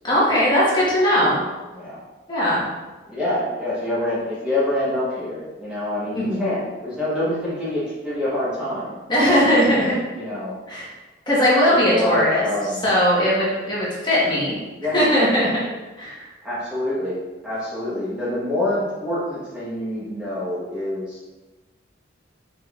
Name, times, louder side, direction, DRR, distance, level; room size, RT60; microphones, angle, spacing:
voice 1, 0.0-1.4 2.3-2.6 6.1-6.5 9.1-9.9 10.7-10.9 11.3-12.4 12.8-14.5 14.9-15.5 16.0-16.3, equal, 25° left, -7 dB, 1.2 m, -19 dB
voice 2, 3.1-9.8 10.1-10.6 11.7-12.8 14.8-15.0 16.4-17.2 17.4-21.3, left 1 dB, 5° right, -10 dB, 1.0 m, -26 dB
5.0 x 3.8 x 2.4 m, 1.2 s
head